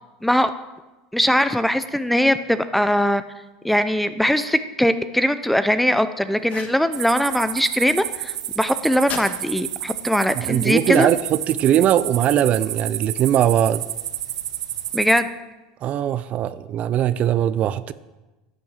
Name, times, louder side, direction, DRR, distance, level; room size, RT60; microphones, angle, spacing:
voice 1, 1.1-3.2 3.6-11.1 14.9-15.3, equal, 5° left, 0.6 m, -20 dB
sound 1, 6.4-6.8 9.1-9.3 10.8-11.3, left 7 dB, 45° left, 1.8 m, -34 dB
sound 2, 6.9-15.2, right 12 dB, 90° right, 0.7 m, -30 dB
voice 2, 10.4-13.8 15.8-17.9, right 11 dB, 40° right, 0.5 m, -20 dB
11.0 x 9.4 x 7.2 m
supercardioid pair, 115°, 3 cm